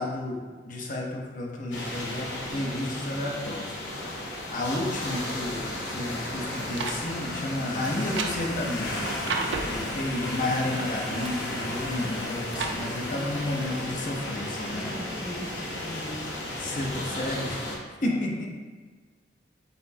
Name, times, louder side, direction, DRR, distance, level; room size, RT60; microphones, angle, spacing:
voice 1, 0.0-9.4 9.6-14.9 16.6-17.7 18.0-18.5, left 1 dB, 45° left, 0 dB, 0.7 m, -32 dB
sound 1, 1.7-17.8, left 1 dB, 90° left, 0.8 m, -34 dB
sound 2, 6.3-7.0 7.8-9.8 10.8-11.5 12.0-12.8 13.3-13.4, right 4 dB, 80° right, 0.4 m, -34 dB
voice 2, 9.1-9.8 11.1-11.6 13.1-13.3 14.7-16.5 18.0-18.5, left 1 dB, 10° left, -3 dB, 0.3 m, -41 dB
4.1 x 4.0 x 2.7 m, 1.4 s
head